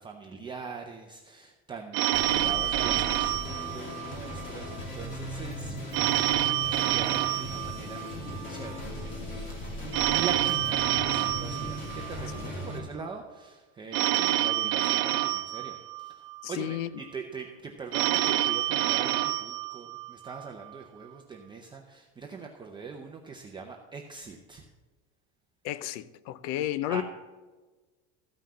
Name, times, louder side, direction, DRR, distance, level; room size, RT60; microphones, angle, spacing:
voice 1, 0.0-24.6 26.9-27.0, right 5 dB, 15° right, 0.6 m, -42 dB
Telephone, 1.9-4.4 5.9-8.4 9.9-12.4 13.9-16.4 17.9-20.4, right 14 dB, 70° right, 0.7 m, -28 dB
sound 1, 2.1-12.8, equal, 30° left, 2.6 m, -38 dB
voice 2, 16.4-16.9 25.6-27.0, left 13 dB, 75° left, 0.7 m, -32 dB
14.0 x 5.7 x 7.5 m
cardioid pair, 165°, 37 cm